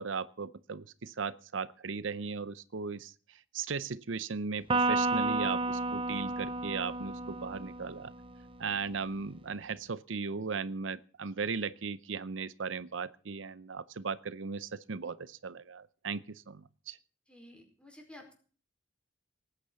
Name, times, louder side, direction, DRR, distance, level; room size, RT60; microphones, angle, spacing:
voice 1, 0.0-3.1 3.5-8.1 8.6-17.0, right 5 dB, 85° right, 16 dB, 0.7 m, -37 dB
Electric guitar, 4.7-8.2, right 2 dB, 30° right, 0.8 m, -31 dB
voice 2, 17.3-18.3, left 1 dB, 5° left, 3 dB, 4.8 m, -52 dB
19.0 x 9.4 x 6.9 m, 0.41 s
head